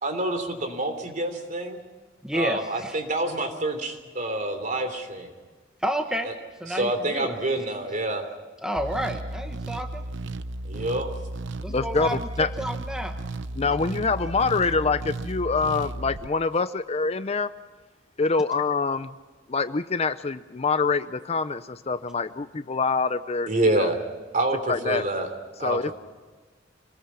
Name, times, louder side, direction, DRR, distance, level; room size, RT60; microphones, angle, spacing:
voice 1, 0.0-1.8 2.3-5.3 6.2-6.3 6.7-8.2 10.6-11.1 23.5-24.0 24.3-25.3 25.6-25.9, right 1 dB, 40° right, 7 dB, 3.3 m, -27 dB
voice 2, 2.2-3.0 5.8-6.3 6.6-7.6 8.6-10.0 11.6-12.2 12.6-13.2, equal, 5° right, 4 dB, 1.1 m, -30 dB
sound 1, 8.8-16.3, right 2 dB, 65° right, 0.7 m, -34 dB
voice 3, 11.7-12.1 12.4-12.5 13.6-17.5 18.2-19.2 19.5-23.5 23.8-23.9 24.7-25.1 25.6-25.9, left 4 dB, 30° left, 12 dB, 0.6 m, -25 dB
26.5 x 20.0 x 5.7 m, 1.4 s
head